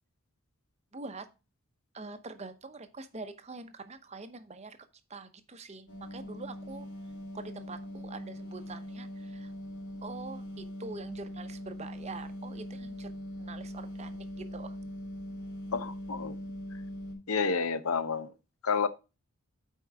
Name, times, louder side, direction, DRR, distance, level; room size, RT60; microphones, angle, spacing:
voice 1, 0.9-1.3 1.9-4.8 5.1-6.9 7.3-9.5 10.0-13.1 13.4-14.7, right 3 dB, 30° right, 0.7 m, -44 dB
sound 1, 5.9-17.1, equal, 55° left, 3.4 m, -41 dB
voice 2, 15.7-16.4 17.3-18.3 18.6-18.9, left 5 dB, 75° left, 0.8 m, -29 dB
8.8 x 4.5 x 4.6 m
head